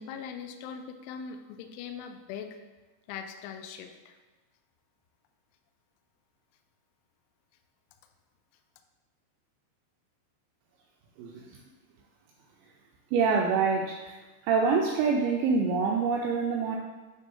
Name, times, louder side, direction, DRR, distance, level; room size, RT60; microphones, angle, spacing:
voice 1, 0.0-2.5 3.1-4.2, left 7 dB, 85° left, 6 dB, 2.9 m, -41 dB
voice 2, 11.2-11.5 13.1-14.2 14.4-16.8, right 5 dB, 90° right, 1 dB, 2.6 m, -26 dB
9.2 x 3.3 x 3.7 m, 1.2 s
omnidirectional pair, 5.7 m